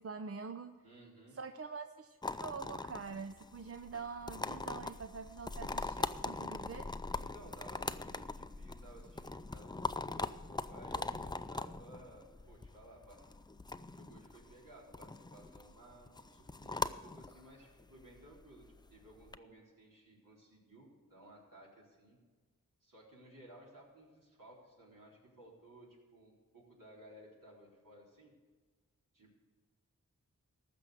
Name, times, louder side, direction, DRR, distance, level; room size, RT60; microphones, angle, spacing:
voice 1, 0.0-0.7 1.3-6.9, right 5 dB, 45° right, 7 dB, 0.6 m, -45 dB
voice 2, 0.8-1.4 7.1-13.3 13.9-18.7 18.9-22.2 22.8-28.3 29.1-29.4, right 1 dB, 70° right, -4 dB, 3.9 m, -57 dB
sound 1, 2.2-19.4, left 2 dB, 15° left, 0.5 m, -42 dB
14.5 x 6.1 x 7.8 m, 1.4 s
cardioid pair, 45°, 34 cm